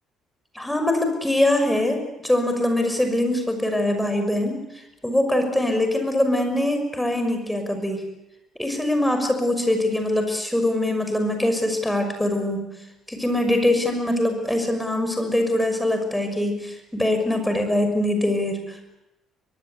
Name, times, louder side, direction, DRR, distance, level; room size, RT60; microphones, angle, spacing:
voice 1, 0.5-4.6 5.0-8.0 8.6-12.6 13.1-19.0, left 1 dB, 5° left, 6 dB, 6.1 m, -23 dB
23.5 x 22.5 x 8.3 m, 0.93 s
figure-of-eight pair, 50°, 0 cm